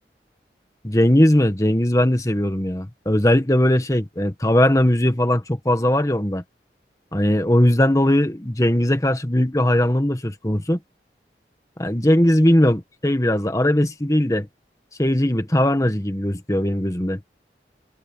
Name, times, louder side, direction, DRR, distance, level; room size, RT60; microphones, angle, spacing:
voice 1, 0.8-6.4 7.1-10.8 11.8-14.5 15.0-17.2, left 1 dB, 20° left, 1.5 m, -19 dB
head